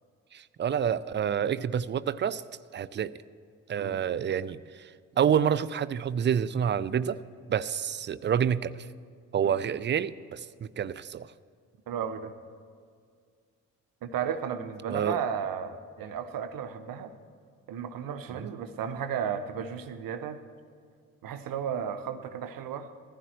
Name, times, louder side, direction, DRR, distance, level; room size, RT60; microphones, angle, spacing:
voice 1, 0.3-2.4 2.7-3.1 3.7-4.9 5.2-7.2 7.5-8.9 9.3-11.3 14.9-15.2 18.3-18.5, right 8 dB, 30° right, 17 dB, 0.5 m, -28 dB
voice 2, 11.9-12.3 14.0-17.1 17.7-20.4 21.2-22.9, right 8 dB, 55° right, 10 dB, 1.0 m, -34 dB
20.0 x 15.0 x 3.0 m, 2.1 s
hypercardioid pair, 45°, 40 cm